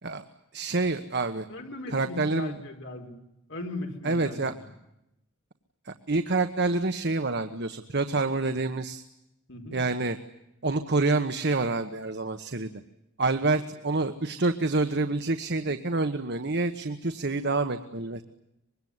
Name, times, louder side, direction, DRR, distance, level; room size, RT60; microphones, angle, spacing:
voice 1, 0.5-1.5 1.9-2.6 4.0-4.5 5.8-9.0 9.7-10.2 10.6-12.7 13.2-18.2, right 3 dB, 50° right, 8 dB, 1.3 m, -27 dB
voice 2, 1.5-3.2 3.5-4.6 9.5-9.8, left 2 dB, 60° left, 3 dB, 4.8 m, -38 dB
25.0 x 22.0 x 9.6 m, 0.84 s
head